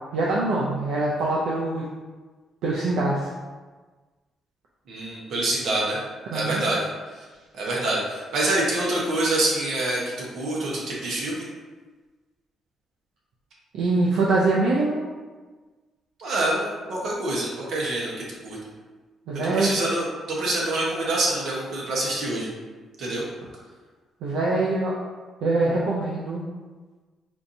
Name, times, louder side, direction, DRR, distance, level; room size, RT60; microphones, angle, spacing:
voice 1, 0.1-1.8 2.6-3.3 6.3-6.6 13.7-15.1 19.3-19.7 24.2-24.9 25.4-26.4, right 2 dB, 85° right, -5 dB, 0.5 m, -23 dB
voice 2, 4.9-6.0 6.3-6.8 7.1-7.2 7.5-11.5 16.2-18.6 19.5-22.5 23.0-23.2, right 2 dB, 70° right, -4 dB, 1.1 m, -26 dB
4.4 x 2.7 x 2.7 m, 1.3 s
cardioid pair, 90°, 0 cm